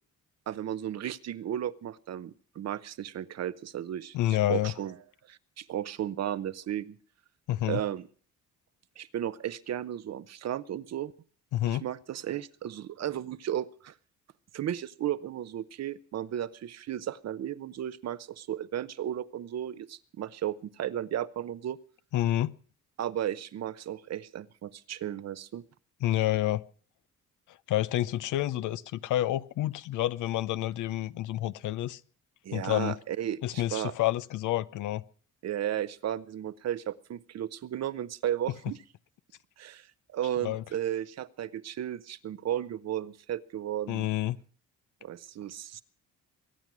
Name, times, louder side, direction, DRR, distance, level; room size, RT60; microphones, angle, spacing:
voice 1, 0.5-4.2 4.5-4.9 5.3-7.0 7.7-8.1 9.0-11.1 11.6-13.9 14.5-21.8 23.0-25.6 32.4-33.9 35.4-38.8 39.6-39.9 40.1-44.1 45.0-45.8, right 11 dB, 60° right, 0.8 m, -34 dB
voice 2, 4.1-4.7 7.5-7.8 11.5-11.8 22.1-22.5 26.0-26.6 27.5-32.0 32.5-33.0 33.4-35.0 40.4-40.6 43.9-44.4, left 14 dB, 80° left, 0.7 m, -29 dB
22.5 x 9.1 x 6.1 m
cardioid pair, 90°, 30 cm